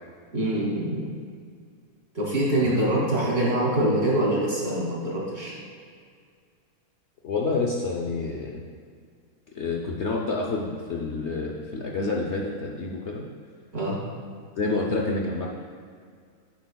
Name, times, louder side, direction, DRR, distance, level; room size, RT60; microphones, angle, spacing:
voice 1, 0.3-1.1 2.1-5.5 13.7-14.0, right 1 dB, 40° right, -5 dB, 2.8 m, -24 dB
voice 2, 7.2-8.6 9.5-13.2 14.6-15.5, left 3 dB, 55° left, -1 dB, 1.0 m, -28 dB
11.5 x 10.5 x 2.3 m, 2.1 s
omnidirectional pair, 1.6 m